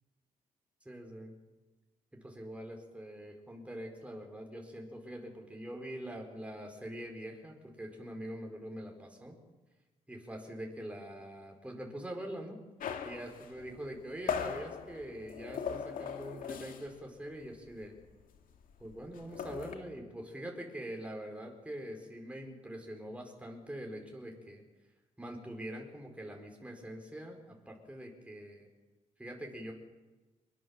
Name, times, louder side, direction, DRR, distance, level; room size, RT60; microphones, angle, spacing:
voice 1, 0.8-1.3 2.1-9.4 10.1-12.6 13.0-17.9 18.8-24.6 25.2-28.7 29.2-29.7, right 1 dB, 10° right, 1 dB, 5.0 m, -44 dB
sound 1, 12.8-17.1 17.3-17.6 17.8-19.8, left 7 dB, 75° left, 2.5 m, -39 dB
24.5 x 22.5 x 7.4 m, 1.2 s
cardioid pair, 110°, 14 cm